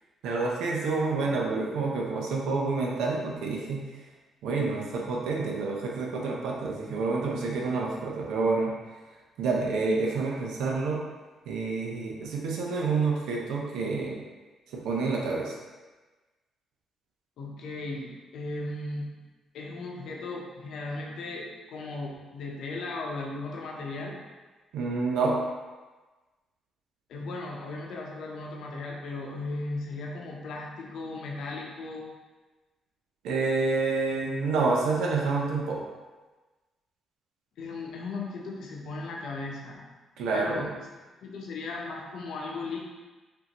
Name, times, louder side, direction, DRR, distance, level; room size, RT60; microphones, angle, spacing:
voice 1, 0.2-3.8 4.4-8.7 9.4-11.0 11.5-14.2 14.7-15.5 24.7-25.4 33.2-35.8 40.2-40.7, right 3 dB, 90° right, -2 dB, 0.8 m, -28 dB
voice 2, 17.4-19.2 19.5-24.2 27.1-32.1 37.6-39.9 40.3-40.7 41.2-42.8, left 3 dB, 75° left, -2 dB, 0.9 m, -36 dB
5.3 x 2.8 x 3.0 m, 1.2 s
cardioid pair, 90°, 0 cm